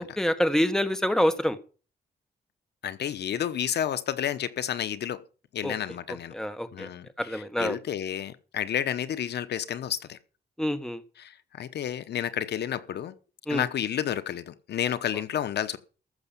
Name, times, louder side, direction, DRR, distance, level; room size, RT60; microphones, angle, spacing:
voice 1, 0.0-1.6 5.6-5.7 6.1-6.9 7.2-7.8 10.6-11.0 13.5-13.6, equal, 5° left, 1.3 m, -26 dB
voice 2, 2.8-5.2 5.5-6.3 6.7-10.2 11.2-13.1 13.5-15.8, left 10 dB, 75° left, 1.0 m, -31 dB
14.5 x 6.6 x 7.2 m
wide cardioid pair, 125°, 17 cm